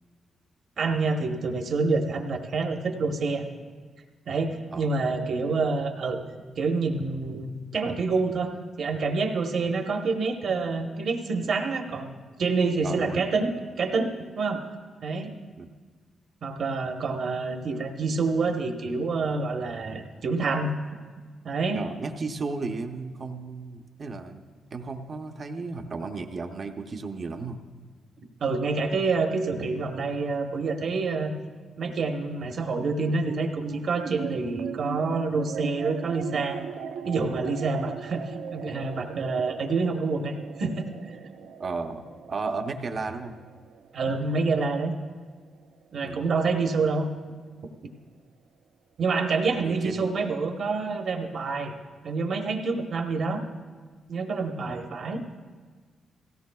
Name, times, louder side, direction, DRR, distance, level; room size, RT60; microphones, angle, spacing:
voice 1, 0.8-3.5 4.3-6.2 6.6-8.5 8.8-13.5 13.8-14.6 15.0-15.3 16.4-20.7 21.4-21.8 28.4-31.3 31.8-36.6 37.0-40.9 43.9-44.9 45.9-47.1 49.0-51.7 52.0-53.4 54.1-55.4, right 4 dB, 50° right, 4 dB, 1.1 m, -27 dB
voice 2, 12.8-13.4 15.6-15.7 21.7-24.4 24.7-27.6 41.6-43.4 46.0-46.3 49.6-50.1 54.7-54.8, right 4 dB, 35° right, 5 dB, 0.7 m, -34 dB
sound 1, 33.2-45.8, right 7 dB, 75° right, 0.6 m, -39 dB
18.0 x 16.5 x 2.3 m, 1.5 s
wide cardioid pair, 175°, 0 cm